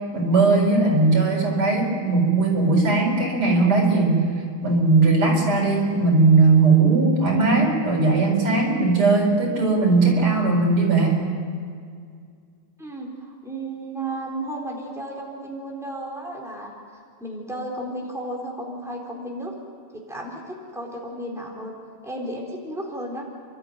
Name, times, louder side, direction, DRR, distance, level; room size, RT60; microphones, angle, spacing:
voice 1, 0.1-4.3 4.6-11.2, right 3 dB, 85° right, 0 dB, 5.4 m, -18 dB
voice 2, 12.8-16.7 17.2-19.5 19.9-21.8 22.0-23.2, right 1 dB, ahead, -2 dB, 3.9 m, -33 dB
30.0 x 13.0 x 9.4 m, 2.2 s
omnidirectional pair, 2.4 m